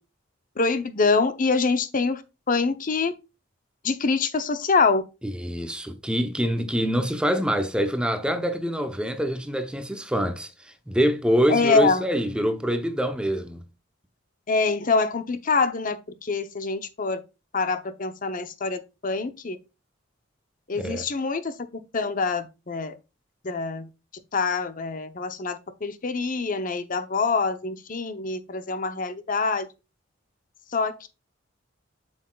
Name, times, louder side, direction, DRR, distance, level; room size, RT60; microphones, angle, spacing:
voice 1, 0.6-2.2 2.5-3.1 3.8-5.0 11.5-12.0 14.5-17.2 17.5-19.6 20.7-23.0 23.4-23.9 24.3-29.7 30.7-31.1, left 4 dB, 45° left, 0.7 m, -25 dB
voice 2, 5.2-13.6 20.7-21.1, equal, 5° right, 0.6 m, -25 dB
7.6 x 6.2 x 2.3 m
head